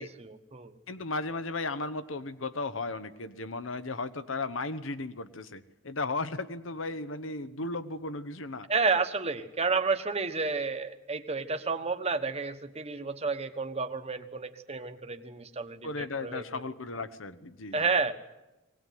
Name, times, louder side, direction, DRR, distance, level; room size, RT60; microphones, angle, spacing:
voice 1, 0.2-0.8 8.7-16.6 17.7-18.1, right 4 dB, 35° right, 7 dB, 1.2 m, -31 dB
voice 2, 0.9-8.7 15.8-17.8, left 3 dB, 80° left, 12 dB, 1.1 m, -35 dB
21.5 x 18.5 x 9.3 m, 1.0 s
head